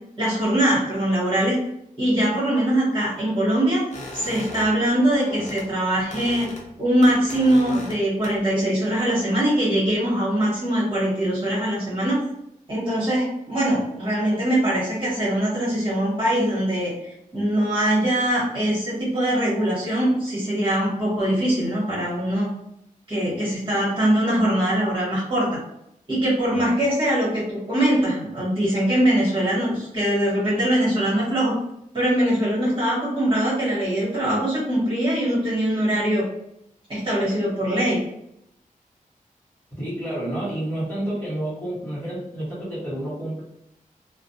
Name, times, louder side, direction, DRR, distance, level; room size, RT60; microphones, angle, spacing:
voice 1, 0.2-1.6 2.0-3.8 4.1-6.5 6.8-12.2 12.7-22.5 23.1-25.5 26.1-31.5 31.9-36.2 36.9-38.0, right 1 dB, 40° right, -9 dB, 1.2 m, -22 dB
sound 1, 3.9-5.7 6.0-6.7 7.0-8.0 8.2-8.6, left 2 dB, 55° left, 0.6 m, -37 dB
voice 2, 39.8-43.4, right 1 dB, 10° left, -10 dB, 1.1 m, -29 dB
2.4 x 2.0 x 2.6 m, 0.79 s
wide cardioid pair, 150°, 14 cm